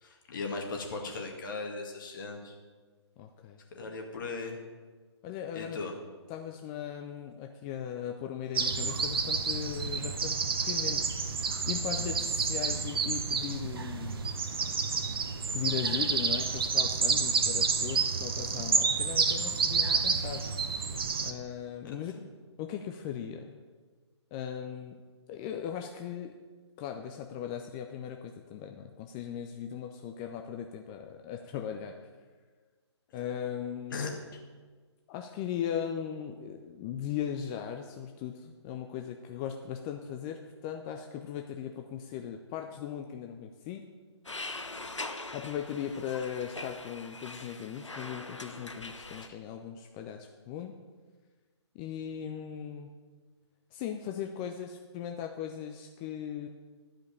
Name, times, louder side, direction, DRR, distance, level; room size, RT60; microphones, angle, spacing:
voice 1, 0.0-2.6 3.7-4.6 5.5-5.9 21.8-22.2 33.9-34.1, left 3 dB, 45° left, 1 dB, 2.0 m, -38 dB
voice 2, 3.2-3.6 5.2-5.8 6.3-10.4 10.6-14.2 15.5-20.4 21.2-22.2 22.6-23.6 24.3-25.0 25.3-26.3 26.8-32.0 33.1-34.1 35.1-43.8 45.3-50.7 51.7-52.9 53.7-56.5, left 9 dB, 15° left, 4 dB, 0.3 m, -38 dB
sound 1, 8.5-21.3, right 5 dB, 50° right, 0.9 m, -29 dB
sound 2, 44.2-49.3, left 2 dB, 85° left, 0.8 m, -42 dB
11.0 x 5.1 x 8.5 m, 1.4 s
figure-of-eight pair, 135°, 15 cm